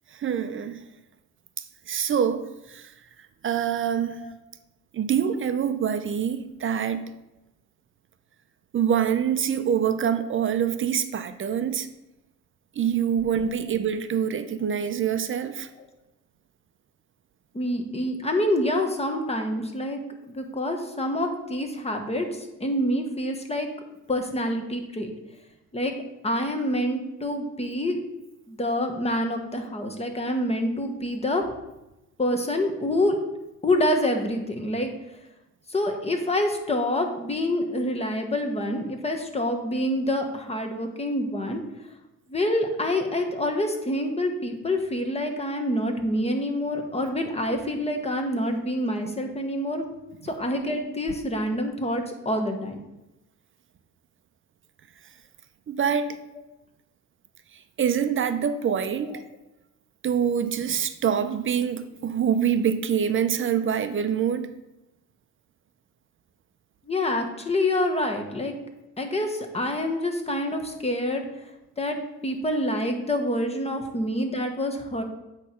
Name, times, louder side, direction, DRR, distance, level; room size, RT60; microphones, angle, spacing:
voice 1, 0.1-0.8 1.9-2.9 3.4-4.2 4.9-7.1 8.7-11.9 12.8-15.7 50.2-50.3 55.7-56.2 57.8-59.2 60.0-64.5, right 8 dB, 40° right, 10 dB, 0.6 m, -25 dB
voice 2, 17.5-20.0 20.3-23.7 24.1-25.1 25.7-25.9 26.2-28.0 28.5-31.4 32.2-33.2 33.6-34.9 35.7-41.6 42.3-49.8 50.3-52.8 59.1-59.2 66.9-68.5 69.0-71.2 71.8-72.0 72.2-75.0, left 1 dB, 20° left, 4 dB, 1.2 m, -27 dB
8.4 x 3.2 x 5.7 m, 0.95 s
cardioid pair, 95°, 31 cm